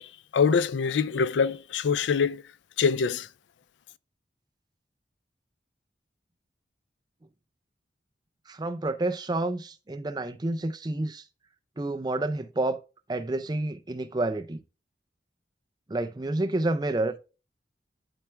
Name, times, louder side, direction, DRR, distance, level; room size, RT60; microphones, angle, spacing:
voice 1, 0.0-2.4 2.8-3.3, left 6 dB, 80° left, 0.4 m, -25 dB
voice 2, 8.5-11.2 11.8-12.8 13.1-14.6 15.9-17.2, right 2 dB, 25° right, 0.5 m, -29 dB
12.0 x 4.5 x 2.2 m
head